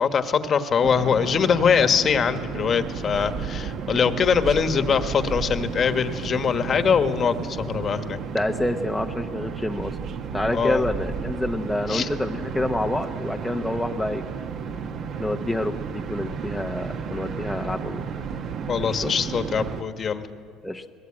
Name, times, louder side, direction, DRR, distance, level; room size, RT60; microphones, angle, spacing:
voice 1, 0.0-8.2 10.5-10.8 11.9-12.1 18.7-20.2, left 6 dB, 35° left, 9 dB, 1.3 m, -22 dB
sound 1, 0.8-19.8, right 6 dB, 50° right, 1.3 m, -33 dB
voice 2, 8.3-10.0 10.3-14.2 15.2-18.1 18.8-19.1 20.6-20.8, left 1 dB, 5° left, 2 dB, 0.8 m, -27 dB
24.0 x 20.0 x 8.7 m, 2.3 s
cardioid pair, 130°, 0 cm